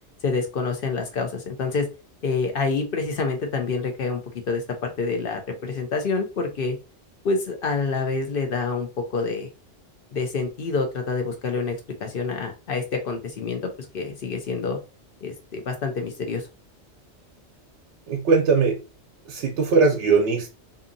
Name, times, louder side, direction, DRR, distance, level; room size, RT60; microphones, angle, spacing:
voice 1, 0.2-1.9 2.2-4.2 4.5-6.8 7.2-9.5 10.1-14.8 15.2-16.5, left 4 dB, 55° left, 0.7 m, -27 dB
voice 2, 18.1-18.8 19.3-20.5, right 4 dB, 75° right, 0.9 m, -20 dB
2.7 x 2.5 x 2.5 m
omnidirectional pair, 1.2 m